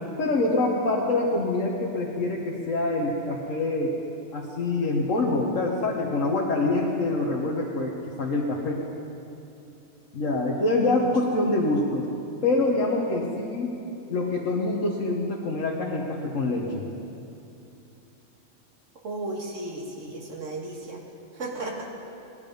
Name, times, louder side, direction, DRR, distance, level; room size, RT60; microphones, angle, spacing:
voice 1, 0.2-3.9 4.3-7.9 8.2-8.8 10.1-12.0 12.4-13.7 14.1-16.9, left 2 dB, 80° left, -4 dB, 1.6 m, -25 dB
voice 2, 19.0-21.0 21.3-21.9, right 2 dB, 70° right, 0 dB, 2.0 m, -34 dB
18.0 x 10.5 x 5.2 m, 2.9 s
omnidirectional pair, 1.3 m